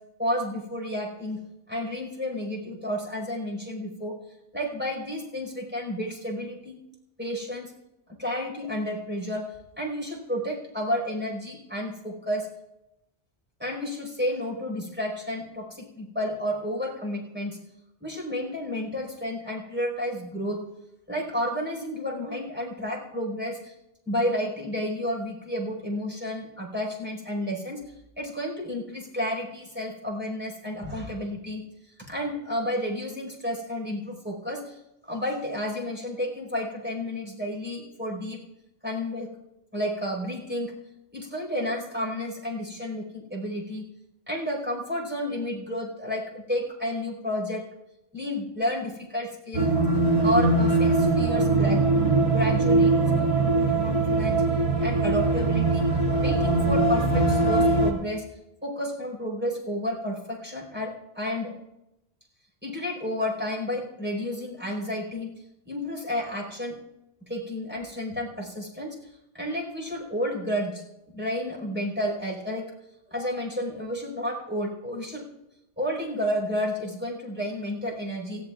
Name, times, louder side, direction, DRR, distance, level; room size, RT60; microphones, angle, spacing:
voice 1, 0.2-4.2 4.5-6.8 7.2-7.7 8.2-9.5 9.8-12.5 13.6-17.6 18.0-20.6 21.1-23.7 24.1-27.8 28.2-31.6 32.0-34.8 35.1-38.4 38.8-39.3 39.7-40.8 41.1-43.9 44.3-47.6 48.1-49.7 50.2-51.8 52.3-54.4 54.8-55.9 56.2-58.2 58.6-61.5 62.6-65.3 65.6-66.8 67.2-69.0 69.3-70.8 71.1-72.7 73.1-75.3 75.8-78.4, equal, 10° right, -2 dB, 4.8 m, -31 dB
sound 1, 49.5-57.9, right 2 dB, 30° right, 2.3 m, -22 dB
30.0 x 16.0 x 2.5 m, 0.93 s
omnidirectional pair, 1.1 m